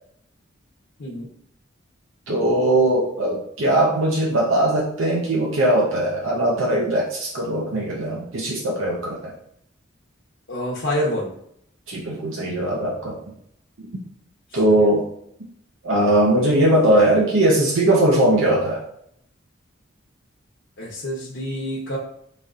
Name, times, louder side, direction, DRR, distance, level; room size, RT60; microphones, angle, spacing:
voice 1, 1.0-1.3 10.5-11.3 14.5-14.9 20.8-22.0, equal, 65° left, -4 dB, 0.7 m, -27 dB
voice 2, 2.3-9.3 11.9-13.2 13.8-13.9 14.5-15.0 15.8-18.8, right 1 dB, 85° right, -3 dB, 0.7 m, -20 dB
5.0 x 2.8 x 2.4 m, 0.70 s
head